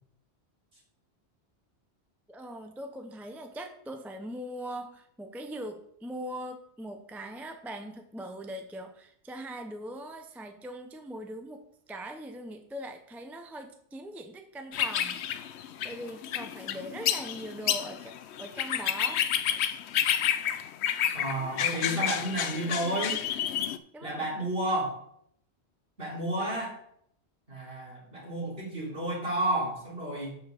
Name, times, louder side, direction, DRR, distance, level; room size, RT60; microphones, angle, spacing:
voice 1, 2.3-15.2 15.6-18.1 18.4-19.6 21.4-22.3 23.9-24.5, right 1 dB, ahead, 5 dB, 0.6 m, -41 dB
sound 1, 14.7-23.8, left 10 dB, 75° left, 0.8 m, -30 dB
voice 2, 21.1-23.2 24.0-25.0 26.0-26.7 27.5-30.4, right 1 dB, 60° right, -6 dB, 3.8 m, -31 dB
6.6 x 5.7 x 6.5 m, 0.67 s
omnidirectional pair, 1.1 m